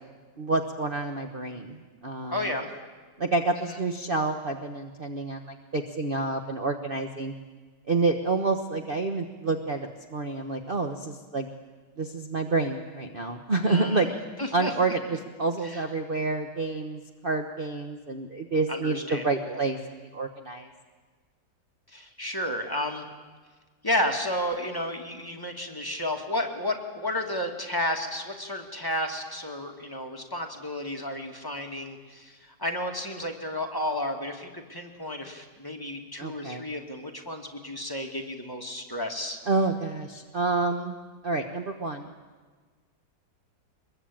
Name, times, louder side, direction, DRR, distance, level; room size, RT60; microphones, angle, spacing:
voice 1, 0.4-2.5 3.2-7.3 7.9-11.5 12.0-14.1 14.5-20.7 36.2-36.7 39.5-41.0 41.2-42.1, right 3 dB, 35° right, 5 dB, 1.2 m, -28 dB
voice 2, 2.3-2.7 3.7-3.8 13.7-14.1 14.4-14.7 15.6-15.8 18.7-19.6 21.9-23.0 23.8-39.4, left 1 dB, 10° left, 2 dB, 2.4 m, -32 dB
24.0 x 22.0 x 8.9 m, 1.4 s
omnidirectional pair, 2.0 m